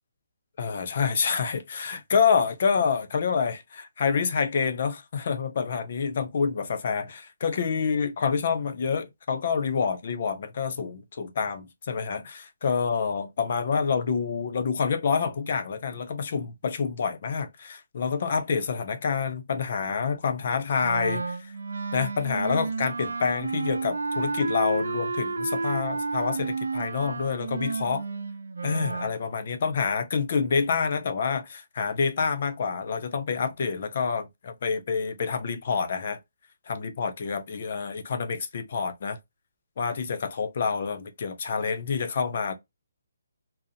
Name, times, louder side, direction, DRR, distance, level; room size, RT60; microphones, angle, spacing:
voice 1, 0.6-21.5 21.9-28.0 28.6-36.2 36.7-39.2 39.8-42.5, left 5 dB, 40° left, 0.4 m, -27 dB
Wind instrument woodwind instrument, 20.8-29.1, right 4 dB, 90° right, 0.4 m, -31 dB
2.6 x 2.0 x 2.6 m
hypercardioid pair, 175°, 0 cm